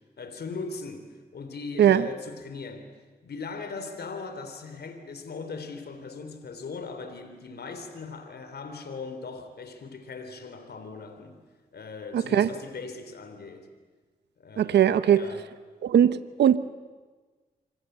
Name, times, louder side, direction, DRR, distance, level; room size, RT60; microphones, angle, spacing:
voice 1, 0.2-2.9 3.2-11.4 11.7-13.7 14.4-15.5, left 4 dB, 70° left, 3.6 m, -39 dB
voice 2, 12.1-12.5 14.6-15.2 15.8-16.6, right 10 dB, 90° right, 0.9 m, -20 dB
26.5 x 26.5 x 8.1 m
cardioid pair, 55°, 17 cm